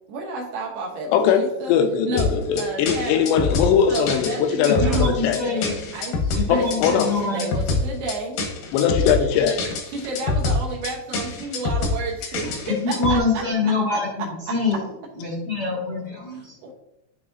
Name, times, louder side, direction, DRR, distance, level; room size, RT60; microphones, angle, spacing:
voice 1, 0.1-1.8 2.0-3.4 3.9-6.1 6.5-8.4 9.9-13.2 13.9-14.0 16.6-16.7, right 3 dB, 75° right, -1 dB, 2.7 m, -32 dB
voice 2, 1.1-5.4 6.5-7.1 8.7-9.7 12.2-12.6, left 7 dB, 90° left, 6 dB, 2.9 m, -21 dB
sound 1, 2.2-13.2, left 3 dB, 70° left, 2.2 m, -25 dB
voice 3, 4.6-5.7 6.3-7.5 12.6-14.8 15.1-16.6, left 3 dB, 55° left, -6 dB, 1.1 m, -25 dB
12.0 x 4.1 x 2.6 m, 0.80 s
omnidirectional pair, 4.9 m